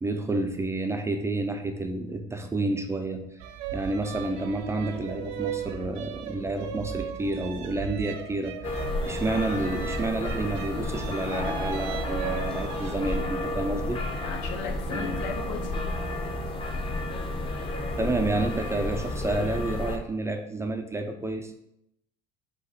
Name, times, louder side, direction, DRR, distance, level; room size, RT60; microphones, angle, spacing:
voice 1, 0.0-3.2 3.7-14.0 14.9-15.2 18.0-21.5, right 2 dB, 15° right, 5 dB, 0.4 m, -30 dB
sound 1, 3.4-13.0, right 9 dB, 70° right, 0.5 m, -37 dB
sound 2, 8.6-20.0, left 2 dB, 25° left, 0.7 m, -31 dB
voice 2, 14.2-15.7, left 6 dB, 70° left, 4 dB, 0.8 m, -37 dB
5.0 x 2.2 x 4.1 m, 0.79 s
supercardioid pair, 100°, 20 cm